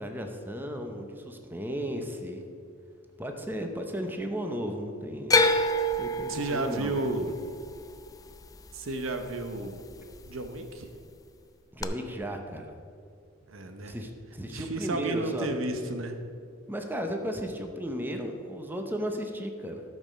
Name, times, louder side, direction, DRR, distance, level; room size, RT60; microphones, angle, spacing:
voice 1, 0.0-2.4 3.2-5.4 6.0-6.9 11.7-12.7 13.8-15.5 16.7-19.8, equal, 10° right, 4 dB, 0.8 m, -35 dB
sound 1, 5.3-9.5 9.8-10.5 11.8-11.9, left 1 dB, 15° left, 0.4 m, -27 dB
voice 2, 6.3-7.4 8.7-9.8 10.3-10.9 13.5-14.0 14.5-16.2, right 2 dB, 75° right, 7 dB, 0.9 m, -32 dB
12.0 x 6.5 x 5.2 m, 2.3 s
head